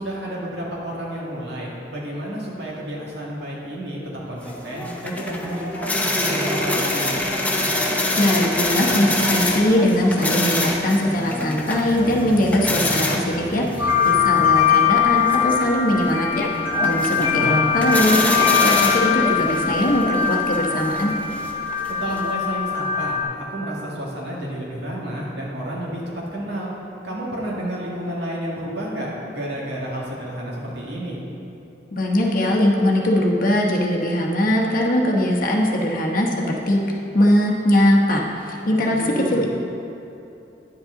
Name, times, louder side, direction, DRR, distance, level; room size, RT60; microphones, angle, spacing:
voice 1, 0.0-4.0 4.3-7.2 17.2-17.8 21.9-26.7 27.0-31.2 39.0-39.5, right 1 dB, 70° right, -5 dB, 2.0 m, -30 dB
sound 1, 4.4-22.3, left 1 dB, 10° left, 0.8 m, -26 dB
voice 2, 8.1-21.1 31.9-36.8 37.1-39.5, left 1 dB, 50° left, -1 dB, 1.1 m, -21 dB
sound 2, 13.8-23.2, left 7 dB, 15° right, 1.8 m, -21 dB
10.5 x 8.0 x 3.8 m, 2.8 s
head